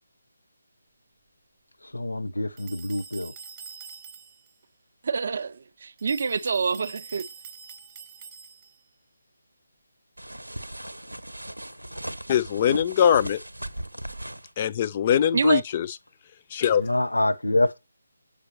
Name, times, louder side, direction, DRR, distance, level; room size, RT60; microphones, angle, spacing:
voice 1, 1.8-3.3 16.8-17.7, left 1 dB, 75° left, 0.5 m, -26 dB
sound 1, 2.6-4.5 6.0-8.9, right 6 dB, 20° right, 0.7 m, -45 dB
voice 2, 5.0-7.3 15.3-15.6, right 5 dB, 45° right, 0.4 m, -26 dB
sound 2, 10.2-14.5, right 1 dB, 85° right, 0.7 m, -37 dB
voice 3, 12.3-13.4 14.6-15.9 16.5-16.8, left 9 dB, 25° left, 0.3 m, -22 dB
7.8 x 5.1 x 2.9 m
figure-of-eight pair, 150°, 0 cm